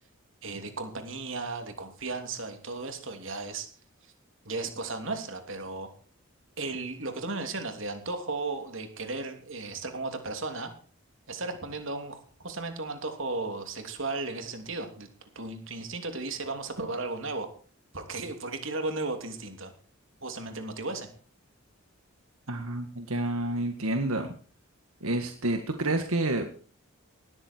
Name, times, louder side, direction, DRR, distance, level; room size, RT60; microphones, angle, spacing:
voice 1, 0.4-3.7 4.4-5.9 6.6-10.7 11.3-15.1 15.3-17.5 17.9-19.7 20.2-21.1, right 3 dB, 65° right, 6 dB, 3.1 m, -35 dB
voice 2, 22.5-24.3 25.0-26.5, right 2 dB, 85° right, 6 dB, 1.9 m, -29 dB
19.0 x 13.5 x 4.6 m, 0.41 s
head